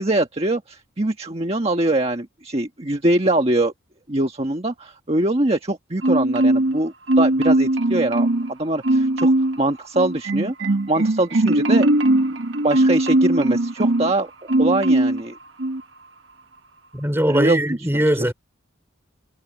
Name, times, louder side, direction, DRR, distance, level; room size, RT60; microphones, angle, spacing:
voice 1, 0.0-3.7 4.1-11.9 12.6-15.4 17.3-17.8, right 2 dB, 30° right, 1.5 m, -23 dB
Marimba xylophone, 6.0-6.8 7.1-8.5 8.8-9.6 10.0-14.1 14.5-15.2 15.6-15.8, right 1 dB, 70° right, 1.2 m, -19 dB
voice 2, 16.9-18.3, right 1 dB, 10° right, 3.5 m, -20 dB
head